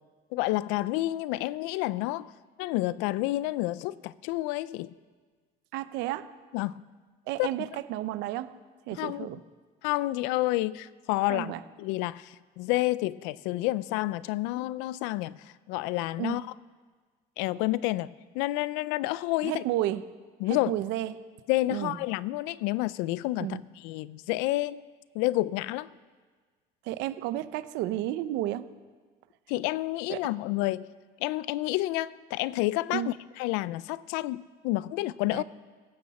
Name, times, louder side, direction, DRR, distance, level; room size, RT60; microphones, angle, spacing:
voice 1, 0.3-2.3 2.6-4.9 6.5-6.7 7.4-7.5 9.0-9.3 9.8-11.5 11.8-15.4 15.7-16.4 17.4-18.1 18.3-19.6 20.4-20.7 21.5-24.8 25.1-25.9 29.5-30.9 31.2-33.1 33.4-35.4, left 18 dB, 90° left, 19 dB, 0.5 m, -29 dB
voice 2, 5.7-6.3 7.3-8.5 8.9-9.4 11.3-11.6 16.2-16.4 19.4-20.0 20.5-21.2 21.7-22.0 23.4-23.6 26.8-28.7 30.1-30.2 32.9-33.1 35.3-35.4, right 14 dB, 75° right, 13 dB, 0.8 m, -32 dB
16.5 x 15.0 x 4.2 m, 1.5 s
cardioid pair, 130°, 18 cm